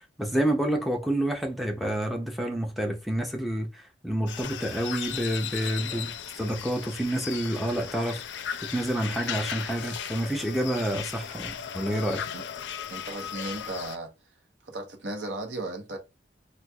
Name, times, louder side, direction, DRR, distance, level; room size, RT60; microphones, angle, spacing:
voice 1, 0.2-6.1 6.4-8.2 8.7-12.2, right 1 dB, ahead, 0.5 m, -28 dB
sound 1, 4.3-14.0, left 9 dB, 90° left, 0.4 m, -37 dB
voice 2, 12.9-14.1 14.6-16.0, right 2 dB, 75° right, 0.9 m, -36 dB
4.3 x 2.4 x 2.3 m
head